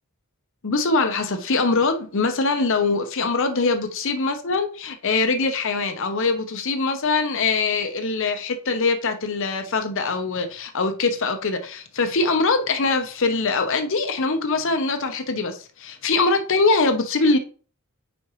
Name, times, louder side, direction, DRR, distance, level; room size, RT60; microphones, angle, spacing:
voice 1, 0.6-17.4, left 3 dB, 60° left, 0.8 m, -23 dB
9.4 x 4.4 x 3.1 m
head